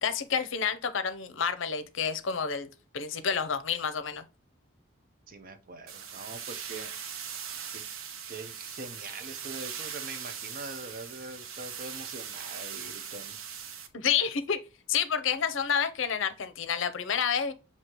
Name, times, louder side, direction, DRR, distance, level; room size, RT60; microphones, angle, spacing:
voice 1, 0.0-2.7 2.9-4.2 13.9-14.6 14.9-17.5, left 7 dB, 70° left, 0.6 m, -29 dB
voice 2, 5.3-7.0 7.7-7.8 8.3-13.4, right 3 dB, 40° right, 0.7 m, -43 dB
sound 1, 5.9-13.9, right 7 dB, 85° right, 0.7 m, -40 dB
6.1 x 2.8 x 2.9 m
head